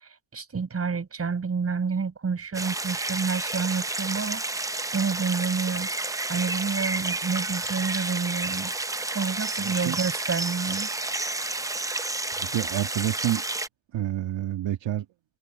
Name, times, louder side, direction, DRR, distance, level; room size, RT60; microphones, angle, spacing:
voice 1, 0.3-4.4 4.9-5.9 6.3-8.7 9.1-10.9, right 5 dB, 30° right, 6.7 m, -29 dB
sound 1, 2.5-13.7, right 2 dB, 10° right, 0.4 m, -30 dB
voice 2, 9.6-10.0 12.4-13.4 13.9-15.1, right 12 dB, 70° right, 2.0 m, -28 dB
cardioid pair, 140°, 46 cm